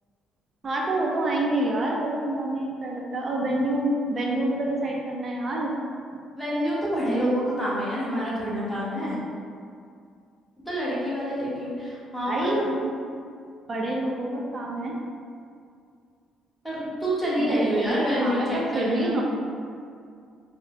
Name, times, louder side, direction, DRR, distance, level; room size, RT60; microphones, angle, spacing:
voice 1, 0.6-5.8 12.3-12.7 13.7-14.9 17.4-19.2, right 1 dB, 40° right, -2 dB, 0.4 m, -27 dB
voice 2, 6.3-9.2 10.7-12.7 16.6-19.2, equal, 5° left, -10 dB, 1.2 m, -27 dB
3.5 x 2.1 x 2.5 m, 2.3 s
cardioid pair, 80°, 0 cm